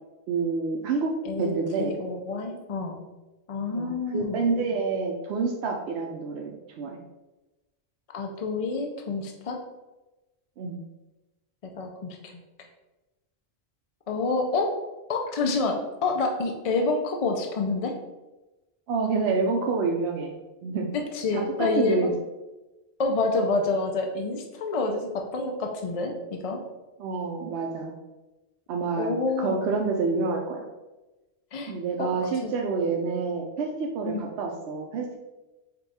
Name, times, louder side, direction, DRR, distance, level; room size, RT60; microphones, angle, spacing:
voice 1, 0.3-1.1 1.4-1.9 3.7-7.0 10.6-10.8 18.9-20.4 20.6-20.9 21.3-22.1 27.0-28.0 28.7-30.7 31.7-35.2, right 4 dB, 85° right, 1 dB, 0.9 m, -28 dB
voice 2, 1.2-3.0 3.5-4.4 8.1-9.6 11.8-12.4 14.1-14.7 15.1-17.9 21.1-22.1 23.0-26.6 29.0-29.7 31.5-31.7 32.0-32.1 32.4-32.5 34.1-34.2, left 3 dB, 50° left, 3 dB, 0.4 m, -28 dB
5.2 x 2.3 x 4.1 m, 1.1 s
omnidirectional pair, 1.1 m